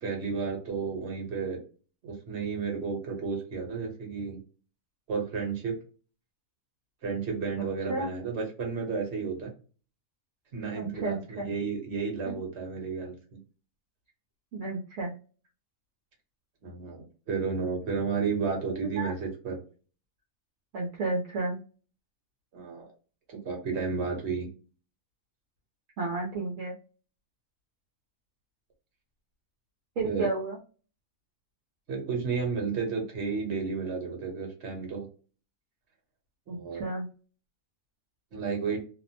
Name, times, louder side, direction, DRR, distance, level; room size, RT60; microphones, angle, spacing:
voice 1, 0.0-1.6 2.0-4.4 5.1-5.7 7.0-9.5 10.5-13.1 16.6-19.6 22.5-22.9 23.3-24.5 30.0-30.3 31.9-35.1 36.5-36.8 38.3-38.8, right 5 dB, 55° right, 1 dB, 1.2 m, -32 dB
voice 2, 10.7-11.5 14.5-15.1 18.7-19.1 20.7-21.6 26.0-26.8 30.0-30.6 36.5-37.1, right 3 dB, 70° right, -3 dB, 1.0 m, -32 dB
2.8 x 2.1 x 2.7 m, 0.36 s
omnidirectional pair, 1.5 m